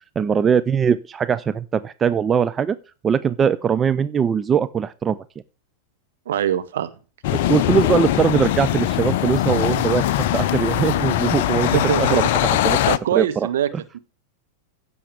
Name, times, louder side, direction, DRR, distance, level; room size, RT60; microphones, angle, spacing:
voice 1, 0.0-2.8 3.0-5.2 7.3-12.8 13.1-13.5, right 7 dB, 20° right, 13 dB, 0.4 m, -21 dB
voice 2, 6.3-6.9 11.6-12.3 12.9-13.7 13.9-14.0, right 10 dB, 60° right, 10 dB, 1.0 m, -23 dB
sound 1, 7.2-13.0, left 13 dB, 50° left, 0.5 m, -21 dB
16.0 x 6.9 x 3.4 m, 0.35 s
figure-of-eight pair, 90°, 0 cm